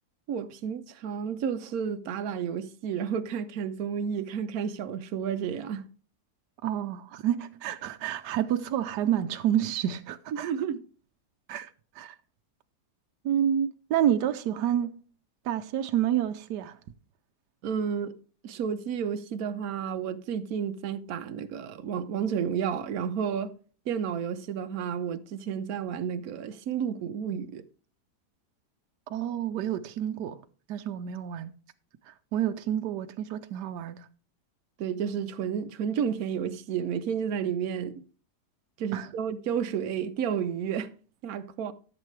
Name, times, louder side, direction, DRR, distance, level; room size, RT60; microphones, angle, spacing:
voice 1, 0.3-5.8 10.4-10.8 17.6-18.1 18.4-23.5 23.9-27.6 34.8-38.0 38.8-40.9 41.2-41.7, right 7 dB, 65° right, 1.2 m, -31 dB
voice 2, 6.6-10.5 11.5-11.7 12.0-12.1 13.2-15.0 15.4-16.8 29.1-30.4 30.7-31.5 32.1-34.1 38.9-39.1, right 10 dB, 85° right, 1.2 m, -29 dB
14.0 x 7.5 x 3.2 m
omnidirectional pair, 1.8 m